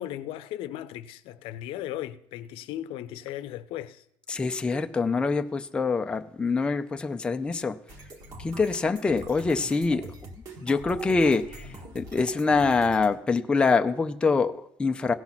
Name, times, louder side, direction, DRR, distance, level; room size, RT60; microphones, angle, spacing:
voice 1, 0.0-4.0, left 12 dB, 75° left, 0.6 m, -36 dB
voice 2, 4.3-7.8 8.4-10.1 10.6-11.7 11.9-15.1, left 4 dB, 10° left, 0.4 m, -25 dB
sound 1, 7.9-13.1, right 1 dB, 40° right, 1.5 m, -44 dB
17.0 x 5.9 x 4.0 m
cardioid pair, 180°, 9 cm